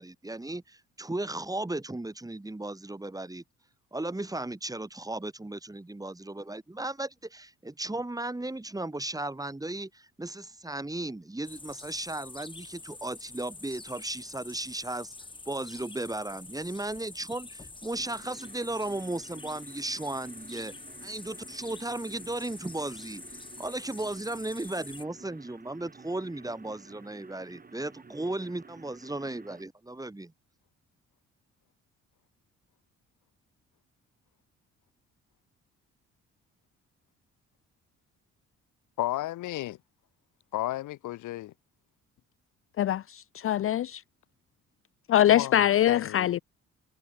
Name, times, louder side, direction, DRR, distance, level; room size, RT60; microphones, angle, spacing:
voice 1, 0.0-3.4 3.9-15.1 15.5-20.7 21.0-23.2 23.6-30.3, right 2 dB, 10° right, 3.9 m, -35 dB
sound 1, 11.4-25.0, left 3 dB, 15° left, 1.5 m, -46 dB
sound 2, 17.9-29.6, right 4 dB, 30° right, 3.8 m, -52 dB
voice 2, 39.0-39.8 40.5-41.5 45.3-46.4, left 15 dB, 80° left, 1.0 m, -33 dB
voice 3, 42.8-44.0 45.1-46.4, left 11 dB, 45° left, 0.5 m, -23 dB
cardioid pair, 90°, 30 cm